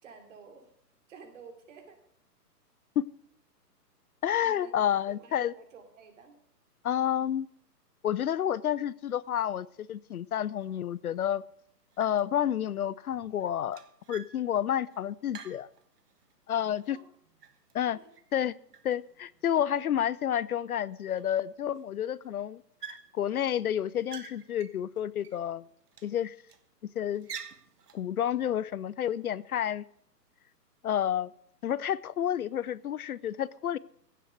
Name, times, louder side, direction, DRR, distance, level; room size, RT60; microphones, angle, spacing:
voice 1, 0.0-0.7 1.1-2.0 4.4-4.7 5.2-6.4 16.9-17.1 17.9-18.2, right 5 dB, 45° right, 6 dB, 3.2 m, -51 dB
voice 2, 4.2-5.5 6.8-7.5 8.0-11.4 12.0-13.8 14.1-15.7 16.5-17.0 17.7-18.0 18.3-18.5 18.8-22.6 22.9-25.6 26.0-26.3 27.0-27.3 27.9-29.8 30.8-31.3 31.6-33.8, left 10 dB, 60° left, 21 dB, 0.6 m, -30 dB
sound 1, 10.6-10.7 11.2-11.6 11.9-12.4 12.7-16.3 16.7-18.4 18.7-19.7 20.3-20.4 20.6-20.7 21.1-21.8 22.1-22.3 22.8-23.4 23.8-25.5 25.9-26.7 27.1-28.1, right 7 dB, 70° right, 1.5 m, -49 dB
16.0 x 7.5 x 6.5 m, 0.66 s
hypercardioid pair, 140°, 49 cm